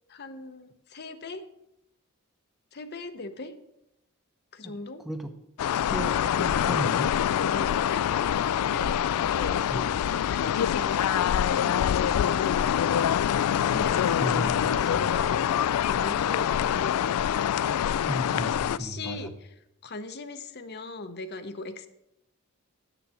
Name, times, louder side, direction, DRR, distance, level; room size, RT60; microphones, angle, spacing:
voice 1, 0.1-1.4 2.7-3.5 4.5-5.0 7.4-13.2 13.7-15.5 15.8-17.1 18.7-19.3 19.8-21.9, left 3 dB, 45° left, 9 dB, 0.7 m, -39 dB
sound 1, 5.6-18.8, left 9 dB, 80° left, 0.3 m, -25 dB
voice 2, 5.9-7.2 9.7-9.9 13.7-13.8 14.2-14.6 15.0-15.1 18.1-19.3, equal, ahead, 6 dB, 0.7 m, -34 dB
8.9 x 6.9 x 6.9 m, 0.81 s
head